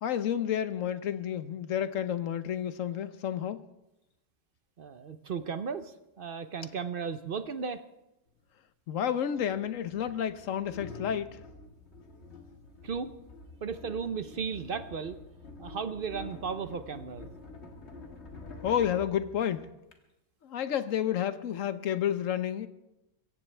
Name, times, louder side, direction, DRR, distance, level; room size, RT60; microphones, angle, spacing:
voice 1, 0.0-3.6 8.9-11.4 18.6-19.7 20.4-22.7, left 9 dB, 85° left, 1.2 m, -30 dB
voice 2, 4.8-7.8 12.8-13.1 13.6-15.2 15.6-17.3, right 6 dB, 50° right, 0.8 m, -35 dB
sound 1, 8.3-8.4 9.3-20.0, left 3 dB, 60° left, 2.1 m, -48 dB
25.0 x 15.0 x 3.3 m
omnidirectional pair, 1.3 m